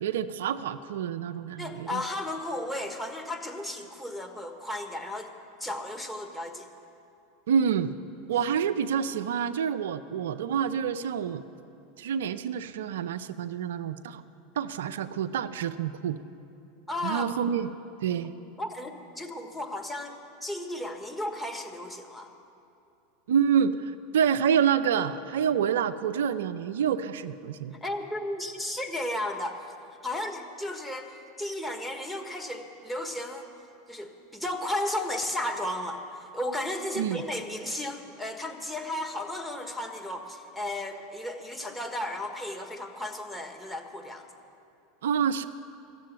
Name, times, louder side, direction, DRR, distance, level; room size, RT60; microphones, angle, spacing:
voice 1, 0.0-2.0 7.5-7.9 8.3-11.4 12.0-14.2 14.6-16.2 17.0-17.7 18.0-18.3 23.3-27.7 37.0-37.2 45.0-45.5, right 8 dB, 75° right, 11 dB, 0.4 m, -27 dB
voice 2, 1.6-5.3 5.6-6.7 16.9-17.3 18.6-20.2 20.4-22.3 27.8-29.6 30.0-33.5 33.9-36.0 36.3-44.3, left 1 dB, 5° left, 3 dB, 1.5 m, -34 dB
13.5 x 7.5 x 9.1 m, 2.7 s
hypercardioid pair, 90°, 0 cm